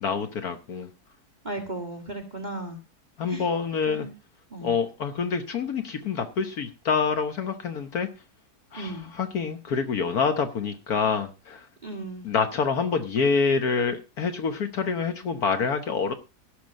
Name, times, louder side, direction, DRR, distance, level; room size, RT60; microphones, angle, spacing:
voice 1, 0.0-0.9 3.2-4.1 4.6-8.1 8.7-11.7 12.2-16.1, left 5 dB, 65° left, 8 dB, 1.5 m, -26 dB
voice 2, 1.4-2.8 3.3-3.5 3.9-4.1 4.5-4.8 8.7-9.1 11.8-12.3, right 2 dB, 25° right, 3 dB, 1.8 m, -35 dB
17.0 x 6.8 x 5.1 m, 0.30 s
omnidirectional pair, 1.7 m